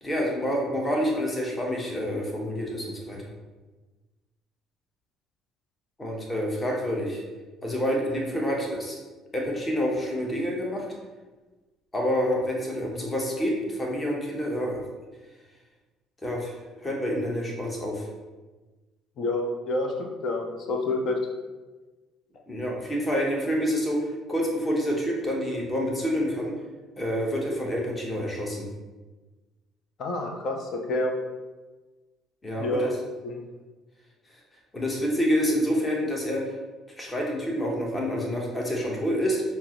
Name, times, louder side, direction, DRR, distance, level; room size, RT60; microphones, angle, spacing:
voice 1, 0.0-3.3 6.0-7.2 7.6-9.0 9.3-10.9 11.9-14.8 16.2-18.1 22.5-26.5 27.0-28.7 32.4-32.9 34.7-36.5 37.0-39.4, equal, 20° left, -1 dB, 0.8 m, -28 dB
voice 2, 19.2-21.2 30.0-31.1 32.6-32.9 33.2-33.4, left 2 dB, 50° left, 2 dB, 0.6 m, -28 dB
5.7 x 2.0 x 2.8 m, 1.2 s
figure-of-eight pair, 50°, 0 cm